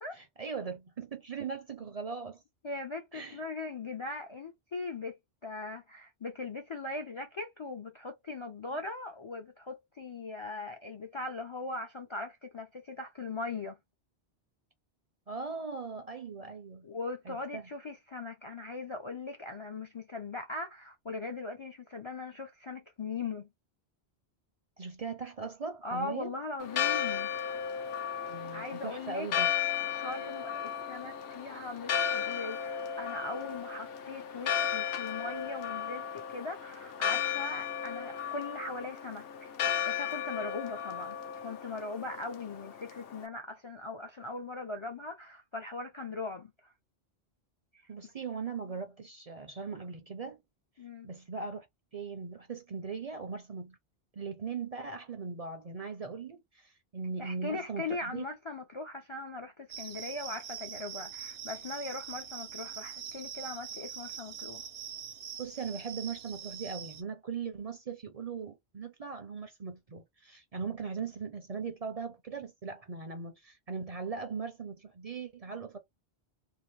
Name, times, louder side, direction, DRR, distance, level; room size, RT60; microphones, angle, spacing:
voice 1, 0.1-2.4 3.1-3.4 8.7-8.8 15.3-16.9 17.3-17.6 24.8-26.3 28.2-29.5 47.9-50.4 51.0-51.7 51.9-53.8 54.1-58.2 65.4-75.8, right 5 dB, 45° right, 0.5 m, -39 dB
voice 2, 2.6-5.2 5.4-13.8 16.8-23.5 25.8-27.3 28.5-29.3 29.8-39.5 39.9-46.7 50.8-51.1 57.2-64.6, left 3 dB, 45° left, 0.4 m, -40 dB
Church bell, 26.6-43.3, left 8 dB, 65° left, 0.8 m, -35 dB
sound 1, 59.7-67.0, right 8 dB, 70° right, 0.8 m, -43 dB
2.8 x 2.4 x 3.1 m
omnidirectional pair, 1.1 m